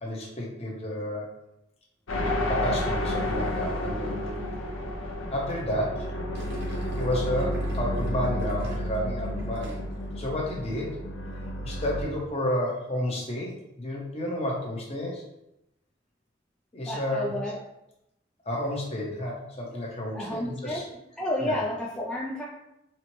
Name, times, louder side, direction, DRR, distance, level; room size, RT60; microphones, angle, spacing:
voice 1, 0.0-1.3 2.2-4.2 5.3-6.1 7.0-9.8 10.2-11.0 11.6-15.2 16.7-17.3 18.4-20.8 21.4-21.6, left 1 dB, 35° left, -2 dB, 0.8 m, -31 dB
sound 1, 2.1-12.0, equal, 75° left, 0.7 m, -31 dB
Gurgling, 6.3-10.1 10.4-10.8, equal, 55° right, 0.9 m, -47 dB
voice 2, 16.8-17.6 20.1-20.9 21.2-22.5, left 1 dB, 5° left, -6 dB, 0.3 m, -31 dB
4.1 x 2.1 x 3.0 m, 0.85 s
head